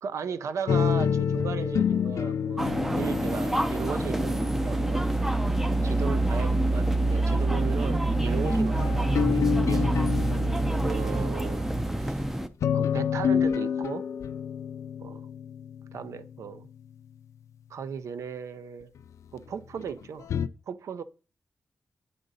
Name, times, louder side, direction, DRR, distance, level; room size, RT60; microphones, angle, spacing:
voice 1, 0.0-5.1 5.6-9.9 10.8-11.7 12.0-12.2 12.7-14.1 15.0-15.2 15.9-16.7 17.7-18.9 19.3-20.3 20.7-21.0, right 7 dB, 80° right, 0.5 m, -36 dB
sound 1, 0.7-5.2 6.1-7.1 8.1-11.6 12.3-16.9 19.0-19.1 19.8-20.5, left 7 dB, 85° left, 0.3 m, -29 dB
sound 2, 2.6-12.5, right 2 dB, 5° right, 0.4 m, -26 dB
9.3 x 3.8 x 4.0 m
wide cardioid pair, 165°, 5 cm